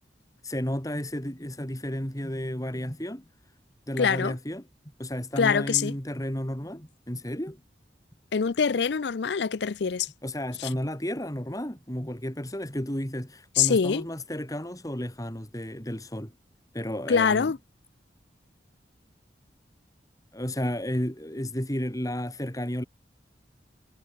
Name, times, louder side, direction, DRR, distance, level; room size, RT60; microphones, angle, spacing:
voice 1, 0.4-3.3 3.9-4.6 5.0-7.6 10.2-16.3 16.7-17.5 20.3-22.8, equal, 20° left, 3.4 m, -32 dB
voice 2, 4.0-4.4 5.4-5.9 8.3-10.1 10.6-10.7 13.6-14.1 17.1-17.6, left 6 dB, 75° left, 0.5 m, -24 dB
head